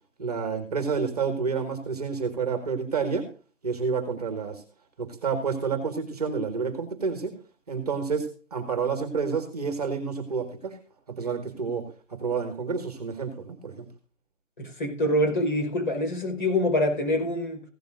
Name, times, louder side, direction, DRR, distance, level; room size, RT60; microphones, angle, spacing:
voice 1, 0.2-3.3 3.6-4.6 5.0-7.3 7.7-10.8 11.1-13.9, right 5 dB, 30° right, 1.8 m, -29 dB
voice 2, 14.6-17.6, left 1 dB, 40° left, 4.8 m, -25 dB
16.0 x 12.0 x 2.6 m
hypercardioid pair, 170°, 37 cm